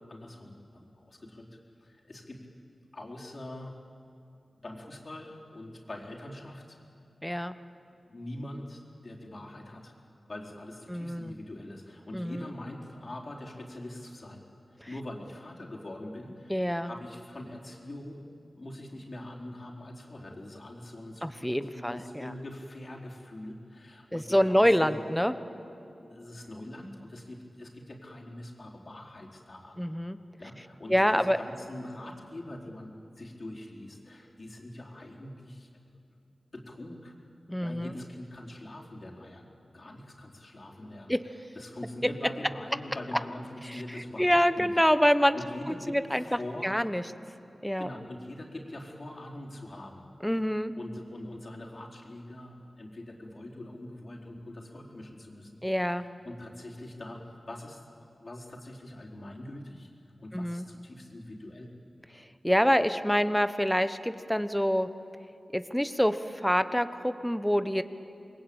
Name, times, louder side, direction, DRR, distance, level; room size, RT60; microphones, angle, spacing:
voice 1, 0.1-2.4 2.9-3.8 4.6-6.8 8.1-9.9 10.3-14.4 14.9-18.2 18.5-25.0 26.0-29.8 30.4-35.7 36.5-37.2 37.6-39.5 39.7-41.1 41.5-44.7 45.3-46.8 47.8-50.1 50.7-57.2 57.5-61.7, left 1 dB, 50° left, -2 dB, 4.4 m, -43 dB
voice 2, 7.2-7.5 10.9-11.4 12.1-12.4 16.5-16.9 21.2-22.3 24.1-25.3 29.8-30.2 30.9-31.4 37.5-37.9 41.1-41.2 44.2-45.4 45.9-46.2 46.6-47.0 47.6-47.9 50.2-50.7 55.6-56.0 60.3-60.7 62.4-64.9 65.5-67.8, equal, 5° left, 11 dB, 1.1 m, -26 dB
27.0 x 21.5 x 8.9 m, 2.7 s
cardioid pair, 60°, 0 cm